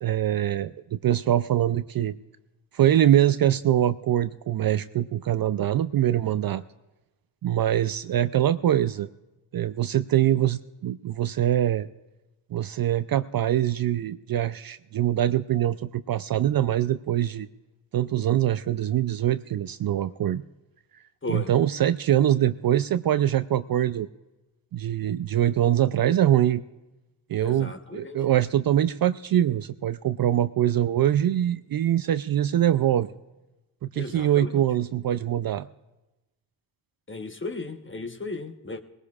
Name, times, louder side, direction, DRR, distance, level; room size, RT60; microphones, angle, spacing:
voice 1, 0.0-2.1 2.7-6.6 7.4-9.1 9.5-11.9 12.5-17.5 17.9-20.4 21.3-24.1 24.7-26.6 27.3-33.1 33.9-35.7, right 11 dB, 50° right, 0.5 m, -23 dB
voice 2, 27.4-28.2 33.9-34.6 37.1-38.8, left 3 dB, 25° left, 1.1 m, -35 dB
19.5 x 17.5 x 2.4 m
supercardioid pair, 50°, 49 cm